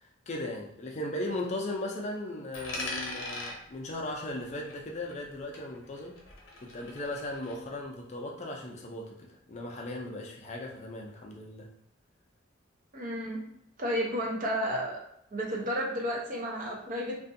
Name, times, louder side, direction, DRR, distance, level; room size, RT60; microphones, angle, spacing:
voice 1, 0.0-6.2 6.6-9.2 9.5-11.7, left 1 dB, 35° left, 0 dB, 0.4 m, -37 dB
Coin (dropping), 2.5-5.3 5.5-7.5, left 2 dB, 75° left, 0.7 m, -41 dB
voice 2, 12.9-13.4 13.8-15.0 15.3-17.2, equal, 45° right, -1 dB, 0.6 m, -32 dB
2.5 x 2.3 x 2.6 m, 0.73 s
head